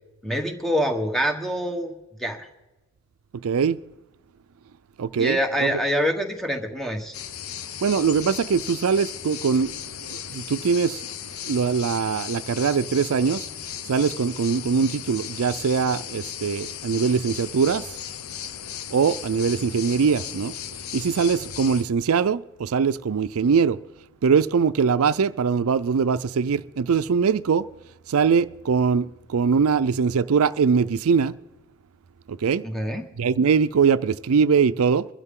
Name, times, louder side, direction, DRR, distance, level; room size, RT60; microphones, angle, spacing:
voice 1, 0.2-1.9 2.2-2.5 5.2-7.1 32.6-33.0, equal, ahead, 1.3 m, -25 dB
voice 2, 3.4-3.8 5.0-5.7 7.8-11.1 11.4-13.5 13.9-18.0 18.9-20.5 20.9-23.8 24.2-27.7 28.1-31.4 32.3-32.6 33.2-35.1, right 6 dB, 80° right, 0.4 m, -22 dB
sound 1, 7.1-21.8, left 9 dB, 75° left, 0.7 m, -36 dB
22.5 x 12.5 x 3.7 m
head